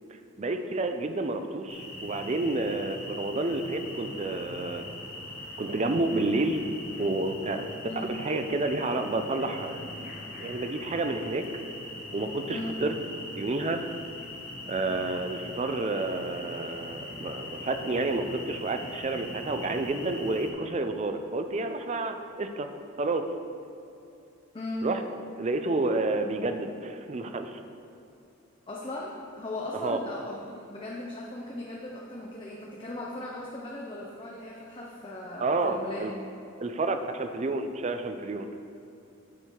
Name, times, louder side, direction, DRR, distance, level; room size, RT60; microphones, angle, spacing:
voice 1, 0.4-4.9 5.6-6.6 7.0-7.7 8.1-11.5 12.1-12.9 13.4-13.8 14.7-22.7 23.0-23.2 24.8-25.0 25.4-27.6 29.8-30.0 35.4-36.1 36.6-38.5, right 2 dB, 30° right, 7 dB, 0.4 m, -30 dB
sound 1, 1.7-20.5, left 2 dB, 40° left, 1.0 m, -41 dB
voice 2, 7.9-8.2 12.5-12.8 24.5-24.9 28.7-36.1, left 1 dB, 25° left, -3 dB, 0.6 m, -38 dB
9.8 x 4.6 x 4.5 m, 2.6 s
head